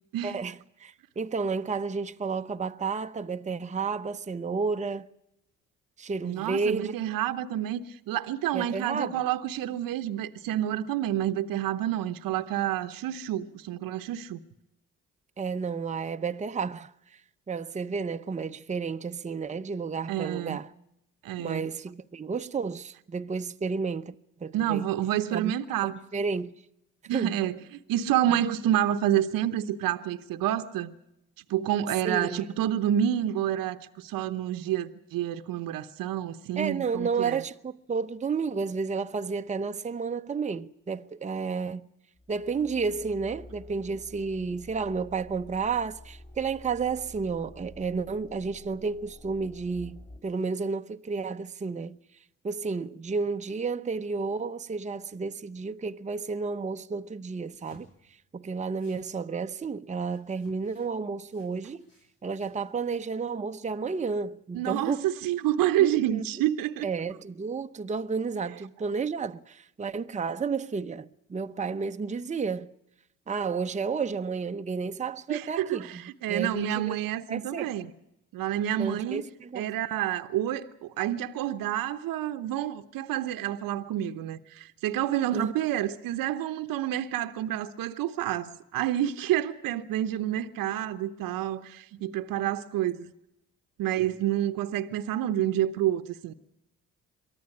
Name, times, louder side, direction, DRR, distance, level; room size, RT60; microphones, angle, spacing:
voice 1, 0.2-5.1 6.0-7.0 8.5-9.2 15.4-17.2 17.5-20.7 21.4-24.1 24.4-24.8 25.3-25.5 26.1-26.5 27.1-27.4 32.0-32.6 36.6-41.9 42.3-52.0 52.4-61.9 62.2-65.1 65.8-66.2 66.8-72.7 73.3-76.0 76.3-77.0 77.3-77.7 78.8-79.7 85.3-85.5, right 5 dB, 20° right, 0.8 m, -31 dB
voice 2, 6.2-14.4 20.1-20.6 21.2-21.6 24.5-26.0 27.1-30.9 31.5-37.4 64.5-66.9 75.3-77.9 78.3-79.2 79.5-93.1 93.8-96.3, right 12 dB, 70° right, 1.0 m, -29 dB
sound 1, 42.2-50.2, left 1 dB, 20° left, 4.2 m, -49 dB
sound 2, 57.6-58.1 58.7-59.1 60.0-60.9 61.2-62.7, left 1 dB, 85° left, 7.5 m, -59 dB
23.5 x 14.0 x 9.9 m
hypercardioid pair, 55°, 36 cm